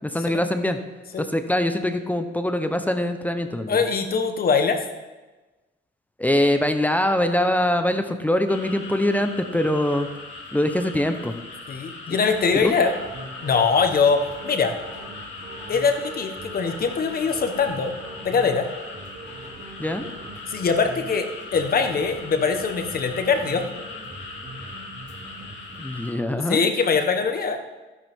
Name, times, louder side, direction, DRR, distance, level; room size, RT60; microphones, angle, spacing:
voice 1, 0.0-0.8 1.2-3.8 6.2-10.1 10.5-11.3 12.1-12.2 12.5-12.8 19.8-20.1 25.8-26.7, left 1 dB, 10° left, 7 dB, 0.8 m, -23 dB
voice 2, 3.7-4.8 11.7-12.9 13.4-14.7 15.7-17.9 18.2-18.7 20.5-23.6 26.5-27.6, left 5 dB, 50° left, 6 dB, 1.2 m, -22 dB
sound 1, 8.5-26.1, left 3 dB, 70° left, 2.4 m, -40 dB
sound 2, 12.3-25.8, right 3 dB, 65° right, 2.7 m, -42 dB
12.0 x 11.0 x 3.6 m, 1.2 s
cardioid pair, 90°, 20 cm